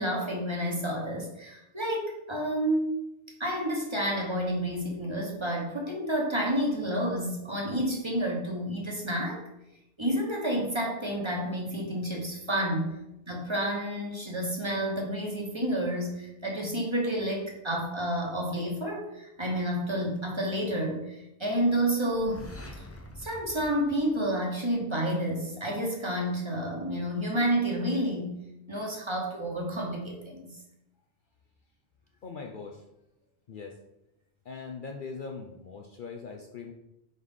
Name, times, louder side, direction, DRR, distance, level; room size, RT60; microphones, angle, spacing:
voice 1, 0.0-2.9 3.4-9.4 10.0-13.0 13.2-22.5 23.2-28.4 28.7-30.6, right 1 dB, 25° right, -1 dB, 1.3 m, -30 dB
sound 1, 22.0-24.9, left 1 dB, 20° left, 0.4 m, -46 dB
voice 2, 32.2-32.8 33.5-33.8 34.4-36.7, left 5 dB, 55° left, 2 dB, 0.7 m, -41 dB
4.7 x 4.1 x 5.3 m, 0.87 s
omnidirectional pair, 1.2 m